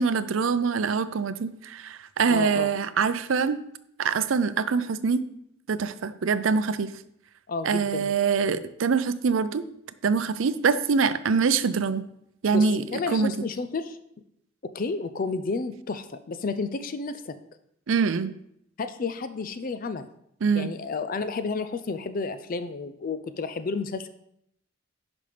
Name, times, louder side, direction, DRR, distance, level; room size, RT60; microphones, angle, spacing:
voice 1, 0.0-3.6 4.0-5.2 5.7-6.9 7.6-9.7 10.0-12.0 12.4-12.8 13.1-13.3 17.9-18.3 20.4-20.7, right 5 dB, 75° right, 14 dB, 0.5 m, -24 dB
voice 2, 2.3-2.7 7.5-8.1 12.5-14.0 14.6-17.4 18.8-20.1 20.5-24.1, left 4 dB, 45° left, 11 dB, 0.4 m, -31 dB
10.5 x 5.2 x 3.4 m, 0.75 s
head